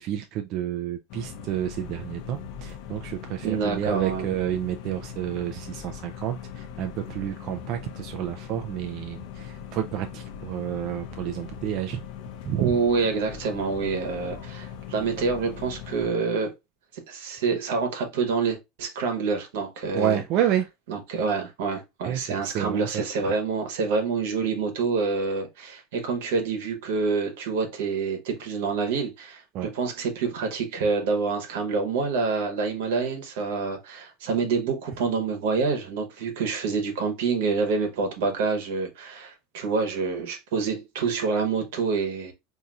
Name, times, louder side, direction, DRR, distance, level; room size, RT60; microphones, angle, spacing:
voice 1, 0.0-12.0 12.5-12.8 19.9-20.7 22.1-23.3 29.5-29.7, right 11 dB, 50° right, 0.3 m, -30 dB
sound 1, 1.1-16.1, left 8 dB, 65° left, 0.6 m, -40 dB
voice 2, 3.4-4.3 12.6-16.5 17.1-20.2 20.9-42.3, right 4 dB, 85° right, 1.1 m, -27 dB
4.0 x 2.7 x 2.3 m
supercardioid pair, 135°, 0 cm